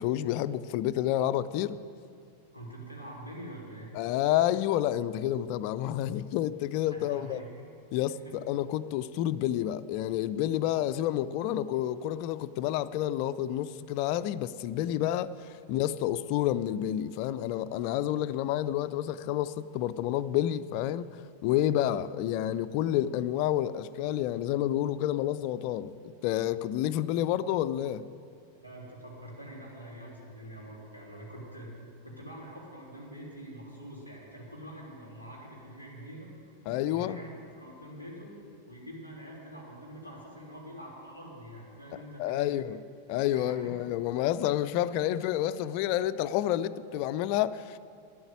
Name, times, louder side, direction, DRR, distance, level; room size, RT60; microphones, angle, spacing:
voice 1, 0.0-1.8 3.9-7.4 7.9-21.1 21.4-28.1 36.7-37.2 42.2-42.8 43.1-47.8, left 12 dB, 45° left, 0.4 m, -29 dB
voice 2, 2.5-3.9 6.9-7.5 8.0-8.4 28.6-31.7 32.0-36.6 36.9-38.4 38.7-42.5 43.3-43.7, right 1 dB, 85° right, 3.2 m, -45 dB
10.0 x 8.0 x 9.4 m
figure-of-eight pair, 90°, 0 cm